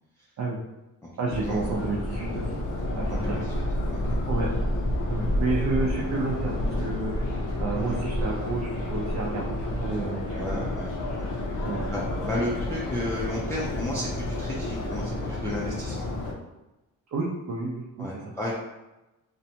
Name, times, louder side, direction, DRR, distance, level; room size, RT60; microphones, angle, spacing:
voice 1, 1.2-2.6 3.0-3.4 4.3-4.5 5.1-7.3 7.6-10.7 11.1-11.3 11.6-11.8 17.1-18.1, right 3 dB, 60° right, -4 dB, 0.5 m, -31 dB
Subway metro underground, 1.3-16.3, left 1 dB, 70° left, 0.6 m, -30 dB
voice 2, 3.1-3.5 3.9-4.0 7.8-8.0 10.4-11.3 11.9-16.1 18.0-18.5, left 1 dB, 10° left, -6 dB, 0.3 m, -33 dB
2.6 x 2.1 x 2.7 m, 1.0 s
wide cardioid pair, 125°, 32 cm